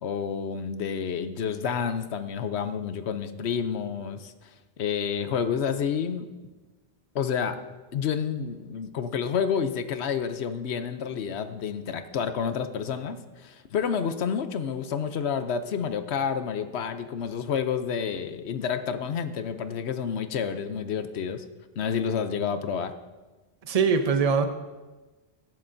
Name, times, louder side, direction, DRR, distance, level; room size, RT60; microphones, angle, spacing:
voice 1, 0.0-4.5 4.8-6.3 7.1-7.6 7.9-21.4 21.8-22.9, left 7 dB, 80° left, 10 dB, 1.0 m, -29 dB
voice 2, 23.6-24.5, right 5 dB, 40° right, 8 dB, 0.8 m, -22 dB
15.0 x 11.0 x 2.7 m, 1.2 s
omnidirectional pair, 1.1 m